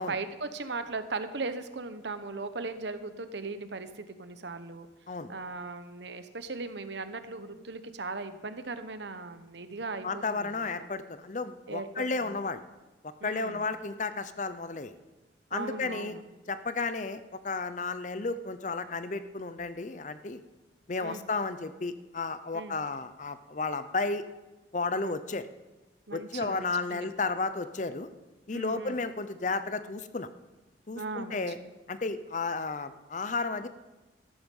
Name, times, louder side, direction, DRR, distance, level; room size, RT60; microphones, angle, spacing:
voice 1, 0.0-4.9 5.3-10.9 11.7-12.4 13.2-13.6 15.5-16.2 21.0-21.2 22.5-22.8 24.9-25.2 26.1-27.1 28.5-29.0 30.9-31.5, right 3 dB, 70° right, 10 dB, 1.0 m, -38 dB
voice 2, 10.0-12.6 13.2-14.9 15.5-16.2 16.5-20.4 20.9-24.2 24.7-25.5 26.1-28.1 28.5-30.3 30.9-31.6 31.9-33.7, left 3 dB, 40° left, 12 dB, 0.6 m, -33 dB
13.5 x 11.5 x 5.4 m, 1.1 s
head